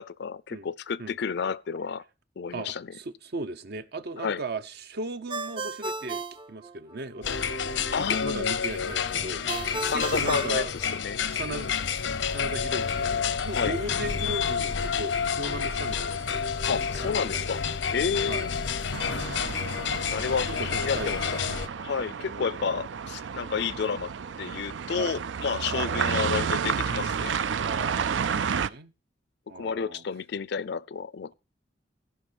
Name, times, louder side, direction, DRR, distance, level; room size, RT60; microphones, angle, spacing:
voice 1, 0.0-2.0 2.4-2.9 4.2-4.4 7.9-8.4 9.9-11.2 13.5-13.8 16.7-17.6 17.9-18.5 20.0-21.4 21.8-24.1 24.4-27.4 29.5-31.3, left 6 dB, 65° left, 0.5 m, -31 dB
voice 2, 2.5-7.5 8.0-10.7 11.3-11.9 12.2-16.4 16.7-17.5 18.3-18.5 20.5-21.6 22.3-22.8 24.9-25.2 25.7-25.9 27.6-28.9 29.5-30.0, right 2 dB, 60° right, 0.8 m, -37 dB
Ringtone, 5.3-7.2 9.5-11.4, right 3 dB, 30° right, 0.6 m, -35 dB
sound 1, 7.2-21.7, left 6 dB, 85° left, 0.8 m, -29 dB
sound 2, 18.9-28.7, right 6 dB, 85° right, 0.5 m, -31 dB
14.5 x 5.6 x 6.1 m
head